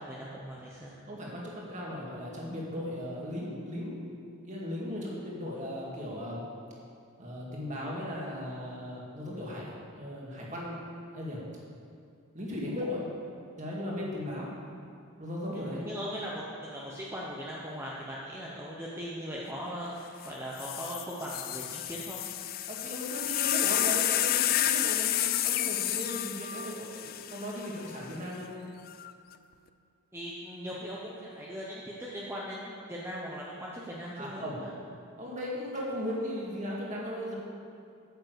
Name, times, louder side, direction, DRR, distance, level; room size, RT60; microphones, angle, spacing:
voice 1, 0.0-1.0 15.5-22.2 30.1-34.7, equal, 10° right, -5 dB, 0.9 m, -39 dB
voice 2, 1.1-3.9 4.5-6.4 7.2-10.8 11.1-11.4 12.3-13.0 13.6-14.5 15.2-15.8 22.7-28.5 34.2-34.6 35.2-37.3, left 1 dB, 35° right, -4 dB, 2.2 m, -37 dB
sound 1, 20.2-20.3 20.6-28.0 28.9-29.3, left 12 dB, 40° left, 0.4 m, -30 dB
9.1 x 7.5 x 8.0 m, 2.4 s
head